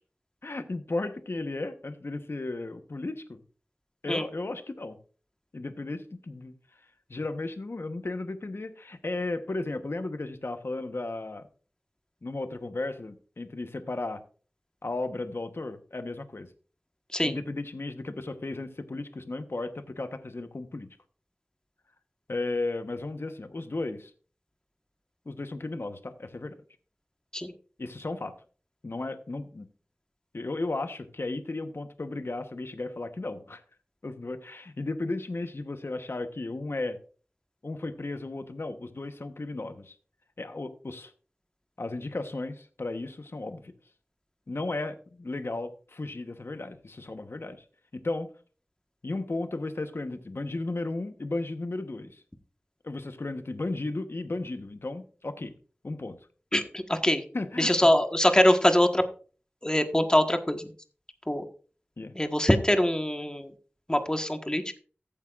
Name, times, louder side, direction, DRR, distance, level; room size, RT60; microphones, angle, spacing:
voice 1, 0.4-3.4 4.0-5.0 5.5-6.5 7.1-11.5 12.2-14.2 14.8-16.5 17.2-20.9 22.3-24.1 25.3-26.6 27.8-28.3 28.8-29.7 30.3-33.6 34.0-37.0 37.6-40.0 40.4-41.1 41.8-43.7 44.5-47.6 47.9-48.3 49.0-52.2 52.8-55.5 55.8-56.2 57.3-57.7 62.0-62.1, left 2 dB, 75° left, 8 dB, 1.0 m, -34 dB
voice 2, 56.5-57.2 57.6-59.0 59.6-60.7 61.3-61.4 62.1-63.5 63.9-64.8, left 1 dB, 20° left, 6 dB, 1.3 m, -23 dB
14.5 x 8.5 x 2.4 m, 0.39 s
wide cardioid pair, 50°, 4 cm